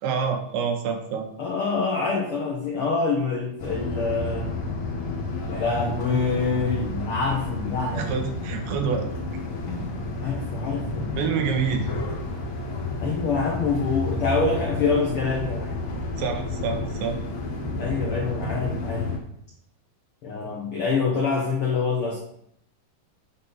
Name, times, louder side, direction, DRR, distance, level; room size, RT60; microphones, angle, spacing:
voice 1, 0.0-1.2 7.9-9.1 11.2-11.9 16.2-17.2, right 6 dB, 75° right, 5 dB, 2.7 m, -27 dB
voice 2, 1.4-4.5 5.5-8.1 10.2-11.1 13.0-15.8 17.8-19.1 20.2-22.2, left 4 dB, 85° left, -2 dB, 1.2 m, -26 dB
sound 1, 3.6-19.2, left 2 dB, 55° left, 1.5 m, -30 dB
8.6 x 4.1 x 5.5 m, 0.73 s
omnidirectional pair, 4.3 m